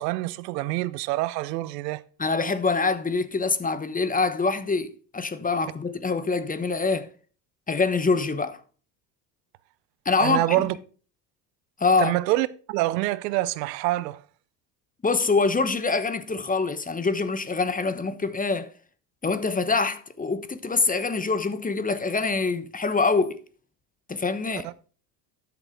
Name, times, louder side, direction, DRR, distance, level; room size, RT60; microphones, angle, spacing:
voice 1, 0.0-2.0 10.2-10.7 12.0-14.2 24.6-24.7, right 17 dB, 75° right, 0.8 m, -26 dB
voice 2, 2.2-7.1 7.7-8.6 10.0-10.6 11.8-12.1 15.0-18.7 19.2-23.4 24.1-24.7, left 4 dB, 15° left, 1.0 m, -25 dB
12.5 x 6.9 x 3.9 m
hypercardioid pair, 75°, 50 cm